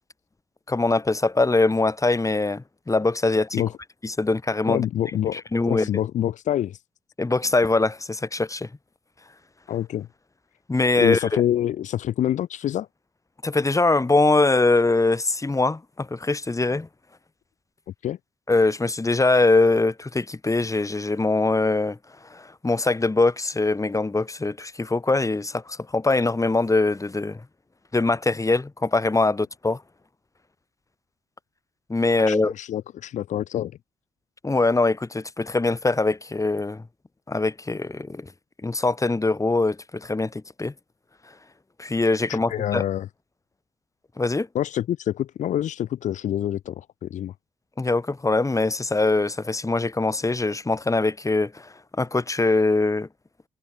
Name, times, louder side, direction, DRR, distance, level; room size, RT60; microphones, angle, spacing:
voice 1, 0.7-3.6 4.0-4.8 5.3-5.9 7.2-8.7 10.7-11.4 13.4-16.9 18.5-22.0 22.3-27.4 27.9-29.8 31.9-32.5 34.4-36.9 37.3-38.3 38.6-40.7 41.8-42.8 44.2-44.5 47.8-53.1, left 3 dB, 25° left, 5.2 m, -22 dB
voice 2, 4.7-6.8 9.7-10.1 11.0-12.9 18.0-18.2 32.3-33.8 42.3-43.1 44.5-47.3, left 11 dB, 70° left, 1.7 m, -26 dB
hypercardioid pair, 50°, 13 cm